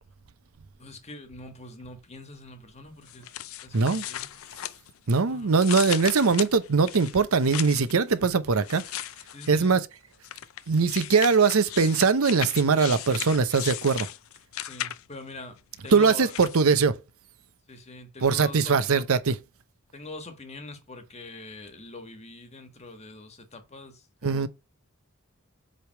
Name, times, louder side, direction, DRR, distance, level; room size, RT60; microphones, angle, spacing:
voice 1, 0.8-3.3 3.6-4.4 5.2-5.7 8.1-8.5 9.3-9.8 14.6-16.3 17.7-19.0 19.9-24.5, left 2 dB, 30° left, 1.4 m, -44 dB
sound 1, 3.1-5.2 5.5-7.9 8.6-9.7 10.2-15.2 15.9-16.6, left 13 dB, 70° left, 0.5 m, -36 dB
voice 2, 3.7-4.0 5.1-8.8 9.5-9.9 10.7-14.1 15.9-17.0 18.2-19.4 24.2-24.5, right 5 dB, 80° right, 0.7 m, -21 dB
7.6 x 3.4 x 4.5 m
head